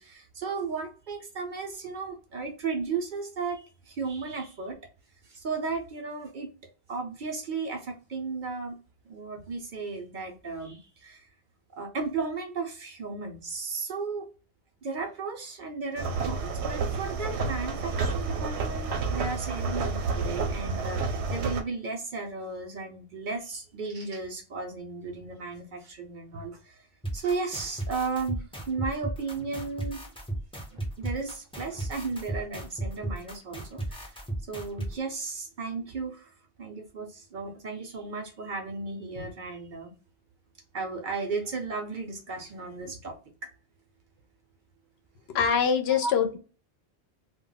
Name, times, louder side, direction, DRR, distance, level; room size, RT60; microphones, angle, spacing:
voice 1, 0.0-4.8 5.2-6.5 6.9-8.8 9.1-11.3 11.7-14.2 14.8-26.8 27.1-30.0 30.7-34.1 34.5-36.3 36.6-39.9 40.7-43.5 45.9-46.2, right 4 dB, 55° right, 4 dB, 0.6 m, -35 dB
sound 1, 16.0-21.6, right 4 dB, 85° right, 0.9 m, -30 dB
sound 2, 27.0-34.9, right 1 dB, 5° left, 0.5 m, -34 dB
voice 2, 45.3-46.4, left 7 dB, 75° left, 5 dB, 0.8 m, -24 dB
2.2 x 2.1 x 3.7 m, 0.34 s
omnidirectional pair, 1.1 m